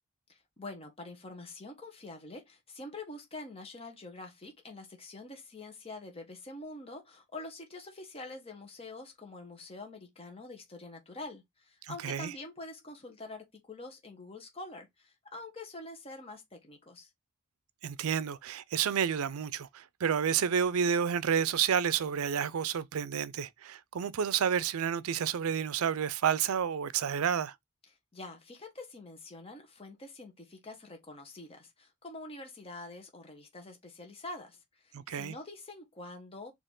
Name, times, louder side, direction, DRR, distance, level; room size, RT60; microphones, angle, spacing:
voice 1, 0.3-17.1 28.1-36.5, left 2 dB, 25° left, 1.2 m, -46 dB
voice 2, 11.8-12.3 17.8-27.5 34.9-35.3, right 8 dB, 75° right, 0.4 m, -30 dB
4.4 x 2.9 x 3.6 m
head